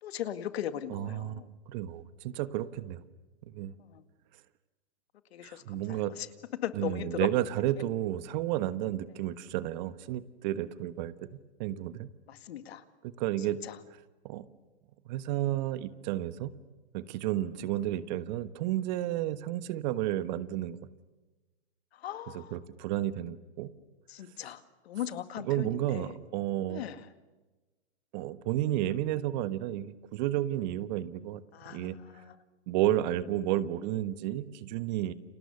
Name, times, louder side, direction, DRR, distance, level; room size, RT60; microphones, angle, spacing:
voice 1, 0.0-1.5 3.8-4.1 5.3-6.3 6.6-7.3 12.3-12.8 13.6-13.8 21.9-22.6 24.1-26.2 26.7-27.1 31.5-32.4, left 11 dB, 60° left, 11 dB, 2.1 m, -38 dB
voice 2, 0.9-3.0 3.4-3.7 5.4-6.1 6.7-11.1 11.6-12.1 13.0-13.6 14.2-14.4 15.1-16.5 16.9-20.8 22.3-23.7 25.4-26.8 28.1-31.4 31.7-32.2 32.7-35.1, right 13 dB, 40° right, 14 dB, 1.3 m, -32 dB
30.0 x 27.5 x 7.0 m, 1.2 s
hypercardioid pair, 140°, 35 cm